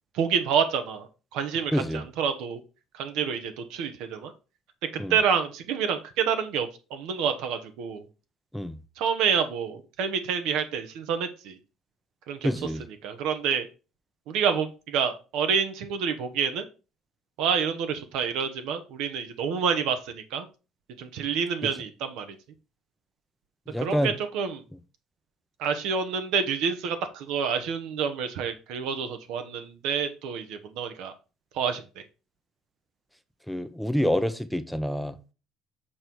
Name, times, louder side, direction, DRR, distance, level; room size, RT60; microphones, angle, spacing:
voice 1, 0.1-2.6 2.9-4.3 4.9-8.1 9.0-11.6 12.3-12.5 13.0-13.7 14.3-16.7 17.4-20.5 21.0-22.4 23.8-24.6 25.6-31.1 31.5-31.8, right 7 dB, 75° right, 1.0 m, -28 dB
voice 2, 1.7-2.0 5.0-5.1 8.5-8.8 12.4-12.8 21.6-21.7 23.7-24.1 33.5-35.3, equal, ahead, 0.5 m, -27 dB
6.4 x 3.9 x 4.6 m
supercardioid pair, 90°, 0 cm